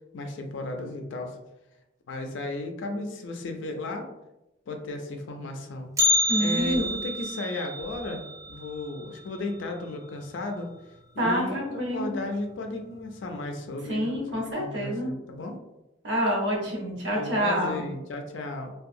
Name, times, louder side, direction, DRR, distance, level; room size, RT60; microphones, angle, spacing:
voice 1, 0.1-1.4 2.1-4.1 4.7-5.9 6.4-10.7 11.1-14.1 14.6-15.6 17.1-18.7, left 2 dB, 70° left, 4 dB, 0.4 m, -34 dB
Bell, 6.0-10.1 10.3-10.4 10.9-11.0 11.8-11.9 12.7-13.0 13.3-13.4, left 2 dB, 15° right, 0.3 m, -29 dB
voice 2, 6.3-6.8 11.2-12.1 13.9-15.1 16.0-17.8, equal, 65° right, -2 dB, 0.9 m, -27 dB
2.7 x 2.3 x 2.5 m, 0.91 s
head